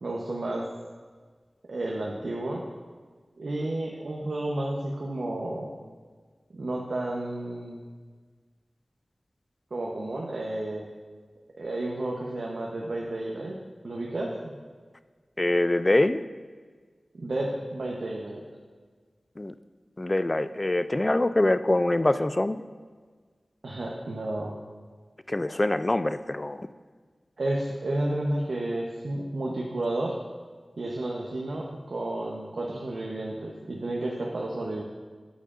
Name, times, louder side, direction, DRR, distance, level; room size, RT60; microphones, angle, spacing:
voice 1, 0.0-0.6 1.7-2.6 3.4-5.7 6.5-7.8 9.7-10.9 11.6-13.6 13.8-14.5 17.2-18.4 23.6-24.6 27.4-30.1 30.8-34.8, right 1 dB, 80° right, -3 dB, 0.9 m, -31 dB
voice 2, 15.4-16.2 19.4-19.5 20.0-22.6 25.3-26.7, left 1 dB, 30° left, 12 dB, 0.3 m, -24 dB
9.3 x 8.4 x 2.5 m, 1.5 s
wide cardioid pair, 65°, 0 cm